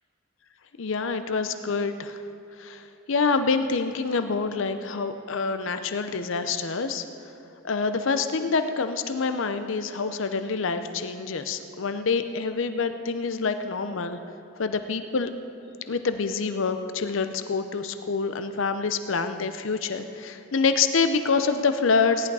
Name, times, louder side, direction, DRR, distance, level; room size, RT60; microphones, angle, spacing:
voice 1, 0.8-2.2 2.6-2.8 3.1-7.0 7.6-14.2 14.6-15.3 15.9-22.3, left 4 dB, 65° left, 9 dB, 0.6 m, -26 dB
17.0 x 11.0 x 4.8 m, 2.9 s
head